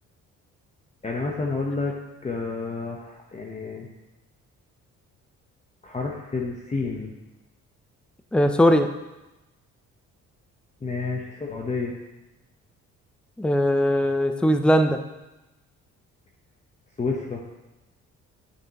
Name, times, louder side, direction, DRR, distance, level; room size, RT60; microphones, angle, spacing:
voice 1, 1.0-1.9 2.2-3.9 5.8-7.1 10.8-11.9 17.0-17.4, left 3 dB, 25° left, -1 dB, 0.9 m, -29 dB
voice 2, 8.3-8.9 13.4-15.0, equal, 5° left, 7 dB, 0.5 m, -19 dB
9.5 x 5.9 x 2.9 m, 1.0 s
cardioid pair, 90°, 30 cm